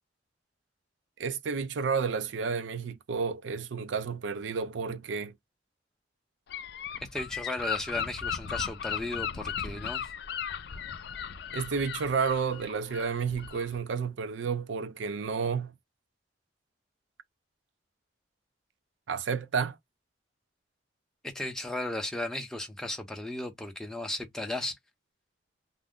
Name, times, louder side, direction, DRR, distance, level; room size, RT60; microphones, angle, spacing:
voice 1, 1.2-5.3 11.5-15.7 19.1-19.8, right 5 dB, 75° right, 0.4 m, -31 dB
Gull seagull / Wind, 6.5-13.8, left 8 dB, 55° left, 0.4 m, -36 dB
voice 2, 7.1-10.1 21.2-24.7, left 1 dB, 5° left, 0.6 m, -35 dB
2.5 x 2.0 x 3.5 m
head